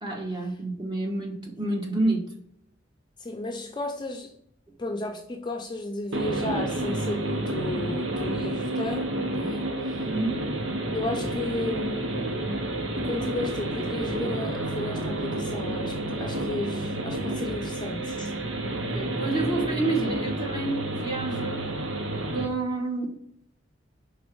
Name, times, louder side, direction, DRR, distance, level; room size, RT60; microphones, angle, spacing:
voice 1, 0.0-2.2 10.0-10.4 18.5-21.6 22.3-23.1, right 2 dB, 25° right, -1 dB, 1.6 m, -29 dB
voice 2, 3.2-4.3 4.8-10.0 10.9-12.2 13.0-18.3, left 2 dB, 25° left, 2 dB, 0.6 m, -34 dB
sound 1, 6.1-22.5, right 1 dB, 75° right, 1.0 m, -30 dB
5.3 x 3.9 x 4.6 m, 0.68 s
head